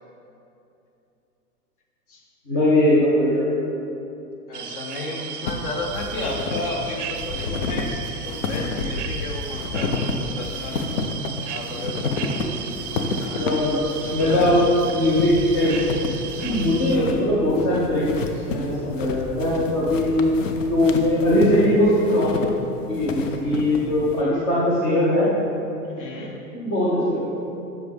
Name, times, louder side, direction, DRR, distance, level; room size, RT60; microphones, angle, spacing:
voice 1, 2.5-3.5 13.4-15.8 16.4-22.4 22.9-25.3 26.2-26.3 26.5-27.2, left 1 dB, 10° left, -7 dB, 0.4 m, -20 dB
voice 2, 4.5-10.8 11.5-13.7 16.9-17.1 26.0-26.3, left 2 dB, 35° left, 0 dB, 1.1 m, -33 dB
sound 1, 4.5-17.0, right 8 dB, 50° right, 0.6 m, -35 dB
sound 2, 5.5-24.2, left 3 dB, 55° left, 0.7 m, -30 dB
7.9 x 6.1 x 3.5 m, 2.8 s
figure-of-eight pair, 105°, 46 cm